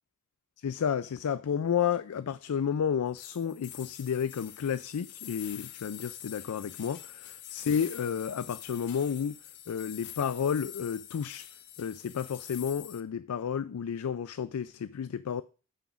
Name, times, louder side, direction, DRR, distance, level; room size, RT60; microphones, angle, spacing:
voice 1, 0.6-9.3 9.7-11.5 11.8-15.4, left 7 dB, 85° left, 0.4 m, -31 dB
sound 1, 3.2-13.0, left 11 dB, 55° left, 0.7 m, -46 dB
6.1 x 5.7 x 7.0 m
head